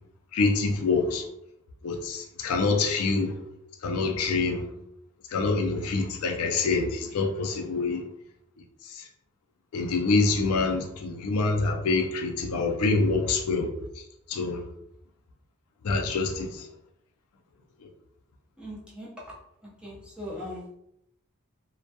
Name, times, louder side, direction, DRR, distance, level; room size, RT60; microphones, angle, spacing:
voice 1, 0.3-1.3 1.8-3.3 3.8-4.6 5.3-8.0 9.0-9.1 9.7-13.7 14.3-14.6 15.8-16.7, left 3 dB, 80° left, 2 dB, 0.4 m, -26 dB
voice 2, 18.6-19.4 19.8-20.7, left 1 dB, 5° right, -6 dB, 0.6 m, -39 dB
2.1 x 2.1 x 2.7 m, 0.78 s
head